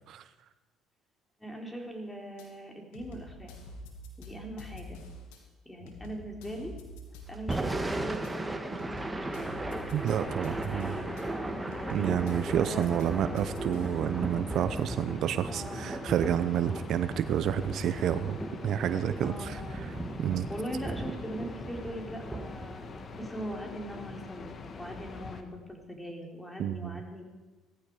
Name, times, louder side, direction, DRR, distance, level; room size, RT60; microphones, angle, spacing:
voice 1, 1.4-3.5 4.2-5.0 5.7-6.7 7.3-9.6 10.2-12.1 12.6-13.6 15.5-15.9 18.4-18.7 19.2-20.2 20.5-22.9 23.1-27.3, equal, 10° left, 1 dB, 4.2 m, -41 dB
sound 1, 2.4-2.5 2.9-5.4 5.9-8.3 8.8-11.2 11.7-14.1, left 1 dB, 90° left, 2.6 m, -46 dB
Thunder / Rain, 7.3-23.6, right 2 dB, 15° right, 1.7 m, -37 dB
sound 2, 9.3-25.4, left 4 dB, 45° left, 1.8 m, -44 dB
voice 2, 9.9-10.9 11.9-18.4 18.6-20.5 26.6-27.0, right 10 dB, 65° right, 12 dB, 0.7 m, -30 dB
18.0 x 14.5 x 5.0 m, 1.2 s
supercardioid pair, 75°, 0 cm